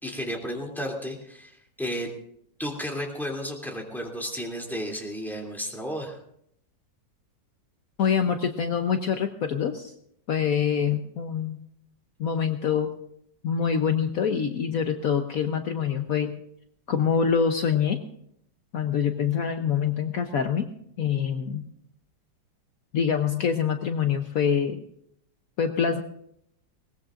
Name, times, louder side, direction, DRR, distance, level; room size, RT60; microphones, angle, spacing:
voice 1, 0.0-2.1 2.6-6.2, equal, ahead, 0 dB, 2.8 m, -33 dB
voice 2, 8.0-9.9 10.3-11.6 12.2-12.9 13.4-16.4 16.9-18.0 18.7-20.7 21.0-21.6 22.9-24.8 25.6-26.0, left 7 dB, 60° left, 6 dB, 1.2 m, -25 dB
21.5 x 19.0 x 2.5 m, 0.71 s
omnidirectional pair, 1.8 m